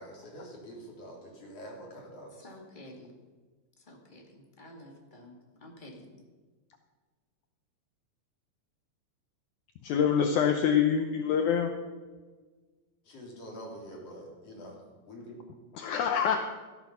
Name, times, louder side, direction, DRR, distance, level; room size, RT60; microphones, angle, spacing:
voice 1, 0.0-2.6 13.0-14.8 15.0-15.4, equal, 45° left, -2 dB, 4.3 m, -46 dB
voice 2, 2.4-3.1 3.9-6.0, left 1 dB, 20° left, 0 dB, 1.5 m, -50 dB
voice 3, 9.8-11.7 15.7-16.4, left 8 dB, 70° left, 5 dB, 2.1 m, -25 dB
14.0 x 12.0 x 5.7 m, 1.4 s
omnidirectional pair, 3.9 m